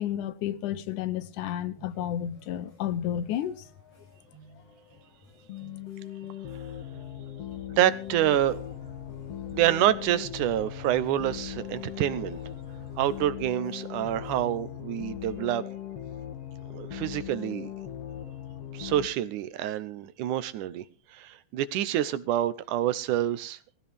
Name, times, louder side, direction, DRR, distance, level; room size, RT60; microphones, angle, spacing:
voice 1, 0.0-3.6, left 11 dB, 85° left, 2.4 m, -31 dB
sound 1, 1.7-15.5, equal, 40° left, 8.1 m, -56 dB
sound 2, 5.5-19.1, left 10 dB, 60° left, 2.2 m, -39 dB
voice 2, 7.7-8.6 9.5-12.4 13.0-15.6 16.7-17.7 18.7-20.8 21.1-23.6, right 12 dB, 85° right, 2.4 m, -27 dB
sound 3, 8.0-13.2, right 3 dB, 20° right, 2.2 m, -52 dB
18.5 x 15.5 x 3.5 m
omnidirectional pair, 3.5 m